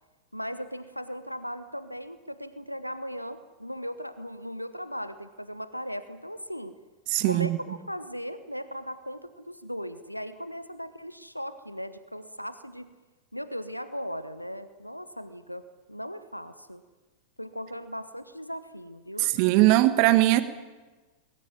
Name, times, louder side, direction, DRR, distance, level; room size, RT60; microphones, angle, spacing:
voice 1, 0.3-6.7 7.3-12.9 13.3-15.6 15.9-16.8 17.4-19.3, equal, 90° left, 13 dB, 1.1 m, -38 dB
voice 2, 7.1-7.6 19.2-20.4, right 17 dB, 45° right, 13 dB, 1.6 m, -20 dB
21.5 x 18.0 x 9.2 m, 1.2 s
figure-of-eight pair, 90°, 0 cm